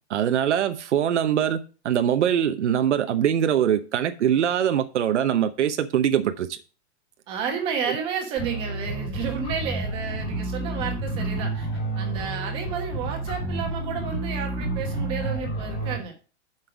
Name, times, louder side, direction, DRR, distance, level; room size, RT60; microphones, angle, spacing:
voice 1, 0.1-6.6, right 9 dB, 90° right, 0.9 m, -23 dB
voice 2, 7.3-11.7 11.9-16.1, right 6 dB, 15° right, 1.2 m, -31 dB
sound 1, 8.4-16.0, right 2 dB, 15° left, 2.4 m, -30 dB
7.6 x 5.6 x 5.9 m
hypercardioid pair, 175°, 34 cm